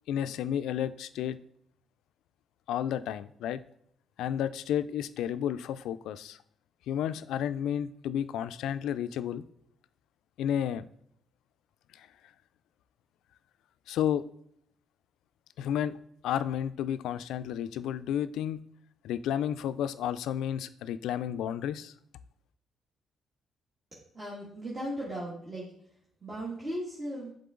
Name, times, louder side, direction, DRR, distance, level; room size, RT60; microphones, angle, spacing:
voice 1, 0.1-1.4 2.7-3.6 4.2-6.4 6.9-9.4 10.4-10.9 11.9-12.1 13.9-14.2 15.6-16.0 16.2-18.6 19.0-21.9, left 10 dB, 85° left, 13 dB, 0.3 m, -31 dB
voice 2, 24.1-25.7 26.2-27.3, right 1 dB, 30° right, -7 dB, 1.9 m, -37 dB
6.8 x 3.8 x 3.7 m, 0.69 s
cardioid pair, 90°, 0 cm